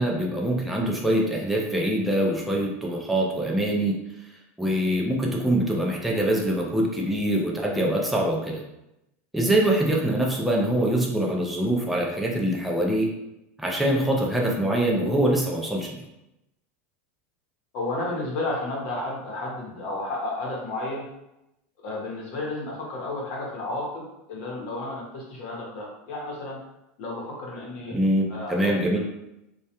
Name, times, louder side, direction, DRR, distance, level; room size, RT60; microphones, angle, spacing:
voice 1, 0.0-4.0 4.6-8.6 9.3-13.1 13.6-16.0 27.9-29.0, right 1 dB, ahead, -2 dB, 0.3 m, -24 dB
voice 2, 17.7-21.1 21.8-24.0 24.3-26.6 27.0-28.0 28.3-29.0, left 2 dB, 55° left, -3 dB, 0.8 m, -32 dB
2.2 x 2.1 x 2.8 m, 0.88 s
supercardioid pair, 150°, 7 cm